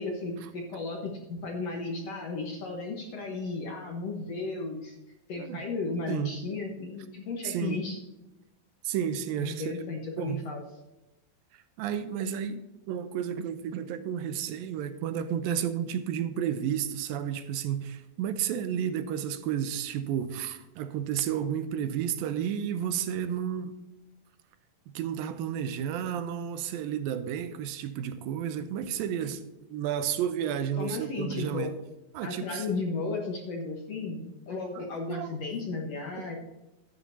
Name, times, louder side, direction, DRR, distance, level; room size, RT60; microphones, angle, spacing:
voice 1, 0.0-5.0 5.3-8.0 9.4-10.6 30.8-31.7 32.2-36.4, left 3 dB, 65° left, 1.7 m, -34 dB
voice 2, 7.4-7.9 8.8-9.7 10.2-10.4 11.5-23.8 24.9-29.4 29.7-31.7 32.1-32.8 34.7-35.3 36.2-36.3, right 9 dB, 80° right, 2.3 m, -32 dB
12.5 x 8.7 x 2.7 m
omnidirectional pair, 4.3 m